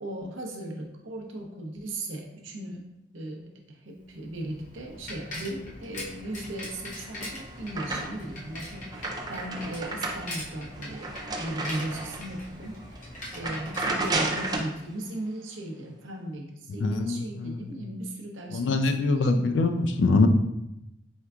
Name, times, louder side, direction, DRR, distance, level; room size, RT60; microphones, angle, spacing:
voice 1, 0.0-2.9 3.1-11.1 11.4-12.8 13.3-19.4, right 1 dB, 85° right, 1 dB, 0.7 m, -37 dB
Bicycle, 4.1-14.9, left 1 dB, 40° left, 0.8 m, -42 dB
sound 1, 6.8-8.4 8.7-12.4 12.8-13.0 13.3-14.8, right 2 dB, 20° right, 0.4 m, -33 dB
voice 2, 16.8-17.7 18.5-20.3, left 3 dB, 65° left, 7 dB, 0.4 m, -24 dB
4.5 x 3.4 x 2.3 m, 0.87 s
head